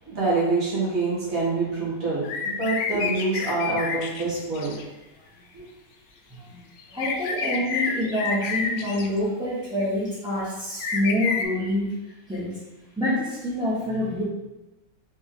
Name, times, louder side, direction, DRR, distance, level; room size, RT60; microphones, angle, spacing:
voice 1, 0.1-4.7 5.5-5.7, right 3 dB, 70° right, -7 dB, 1.9 m, -26 dB
sound 1, 2.2-4.8 6.8-9.1 10.8-11.4, left 5 dB, 65° left, 0.8 m, -29 dB
voice 2, 6.9-11.9 12.3-12.5 13.0-14.2, left 1 dB, 5° right, -11 dB, 0.7 m, -26 dB
4.3 x 3.3 x 3.6 m, 1.0 s
omnidirectional pair, 1.5 m